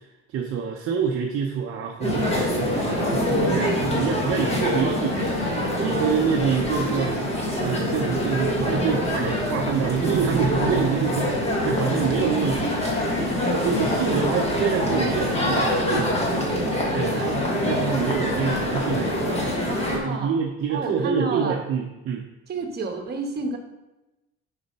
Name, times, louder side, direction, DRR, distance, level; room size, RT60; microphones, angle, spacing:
voice 1, 0.3-7.2 7.6-12.6 13.6-16.1 16.9-19.4 20.0-22.2, right 7 dB, 50° right, 1 dB, 0.7 m, -26 dB
sound 1, 2.0-20.0, left 1 dB, 20° left, 1.5 m, -25 dB
voice 2, 3.1-3.9 5.9-6.2 16.8-17.3 19.7-20.4 20.7-21.6 22.5-23.6, right 3 dB, 35° right, 3 dB, 1.1 m, -31 dB
6.8 x 4.3 x 5.4 m, 1.0 s
cardioid pair, 155°, 29 cm